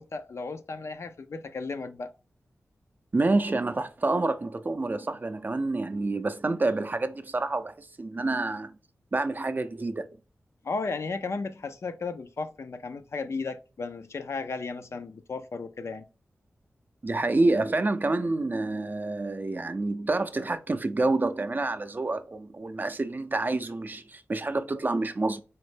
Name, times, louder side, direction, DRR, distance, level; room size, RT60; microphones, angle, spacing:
voice 1, 0.0-2.1 10.6-16.1, left 4 dB, 65° left, 0.4 m, -34 dB
voice 2, 3.1-8.8 9.1-10.1 17.0-25.4, right 2 dB, 35° right, 0.4 m, -28 dB
4.2 x 2.0 x 3.2 m
cardioid pair, 55°, 5 cm